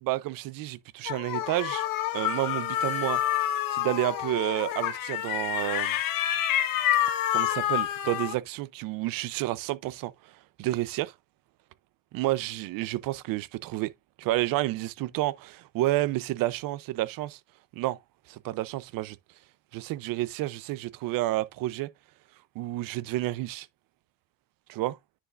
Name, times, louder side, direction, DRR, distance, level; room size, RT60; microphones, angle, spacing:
voice 1, 0.0-1.9 2.1-3.2 3.7-6.0 7.3-10.1 10.6-11.1 12.1-13.9 14.2-17.4 17.7-18.0 18.3-19.2 19.7-21.9 22.6-23.7 24.7-25.0, right 17 dB, 75° right, 0.7 m, -30 dB
sound 1, 1.1-8.3, left 12 dB, 80° left, 1.4 m, -28 dB
9.9 x 4.9 x 2.5 m
cardioid pair, 115°, 34 cm